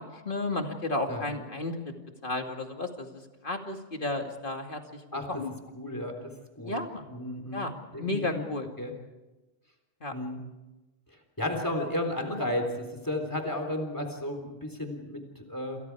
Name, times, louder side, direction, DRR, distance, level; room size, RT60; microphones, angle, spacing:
voice 1, 0.0-1.8 2.2-5.0 5.3-5.5 6.6-7.1 7.5-8.7 10.0-10.1, left 2 dB, 40° left, 3 dB, 2.7 m, -33 dB
voice 2, 5.7-6.1 6.6-6.7 7.1-7.7 7.9-8.5 8.8-8.9 10.1-10.4 11.4-15.8, left 1 dB, 15° left, 4 dB, 3.7 m, -33 dB
28.5 x 27.5 x 4.8 m, 1.1 s
omnidirectional pair, 1.3 m